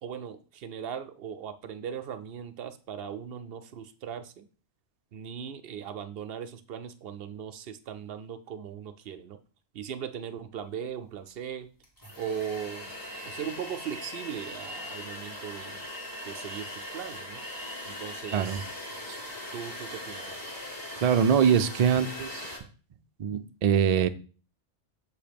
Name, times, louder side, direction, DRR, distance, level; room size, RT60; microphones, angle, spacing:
voice 1, 0.0-4.4 5.1-9.4 9.7-11.7 12.2-13.0 13.3-15.8 16.3-17.4 17.9-18.7 19.1-19.2 19.5-20.4, right 8 dB, 60° right, 10 dB, 0.7 m, -38 dB
sound 1, 11.3-11.4 11.8-22.6, left 1 dB, 15° left, 1.4 m, -40 dB
voice 2, 18.3-18.6 21.0-22.5 23.2-24.1, right 8 dB, 80° right, 9 dB, 0.3 m, -23 dB
6.7 x 2.8 x 5.1 m, 0.37 s
omnidirectional pair, 1.2 m